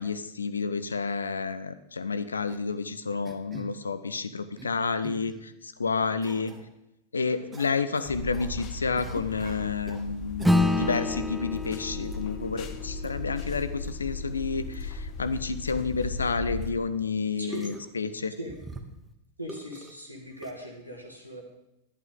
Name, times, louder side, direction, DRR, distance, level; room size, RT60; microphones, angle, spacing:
voice 1, 0.0-6.5 7.1-18.3, left 4 dB, 75° left, 13 dB, 0.6 m, -30 dB
sound 1, 2.5-2.8 3.2-3.7 4.3-4.7 5.0-5.4 6.2-6.6 7.5-8.5 9.0-10.1 10.4-11.0 11.6-11.7 12.0-12.2 13.0-13.1 13.8-13.9 14.1-14.2 14.7-14.8 15.4-15.5 15.7-15.8 16.6-16.7 17.5-17.9 18.5-19.1 19.5-19.9 20.4-20.5, right 3 dB, 15° right, 1.2 m, -44 dB
sound 2, 8.1-16.7, left 3 dB, 40° left, 1.0 m, -37 dB
Acoustic guitar / Strum, 10.4-15.2, left 2 dB, ahead, 0.6 m, -29 dB
voice 2, 19.4-21.4, equal, 90° right, 1 dB, 1.8 m, -40 dB
11.0 x 10.5 x 3.9 m, 0.85 s
figure-of-eight pair, 90°, 0 cm